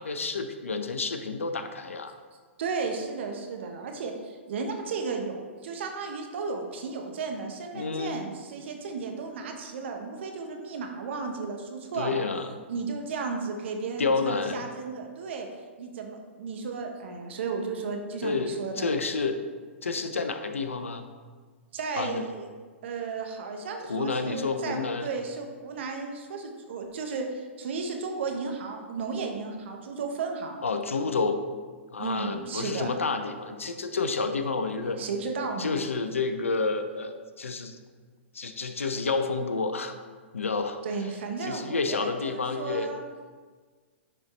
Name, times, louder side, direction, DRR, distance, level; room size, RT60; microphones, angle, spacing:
voice 1, 0.0-2.2 7.7-8.2 11.9-12.5 14.0-14.7 18.2-19.4 19.8-21.1 22.0-22.3 23.8-25.1 30.6-31.4 31.9-35.0 35.6-37.8 38.3-40.0 40.3-40.8 41.4-42.9, left 4 dB, 85° left, 8 dB, 0.6 m, -29 dB
voice 2, 2.6-12.2 12.7-15.5 15.8-18.9 21.7-22.4 22.8-30.6 32.0-32.9 35.0-35.7 40.8-43.0, right 4 dB, 65° right, 4 dB, 1.1 m, -34 dB
10.0 x 4.2 x 3.2 m, 1.5 s
hypercardioid pair, 115°, 7 cm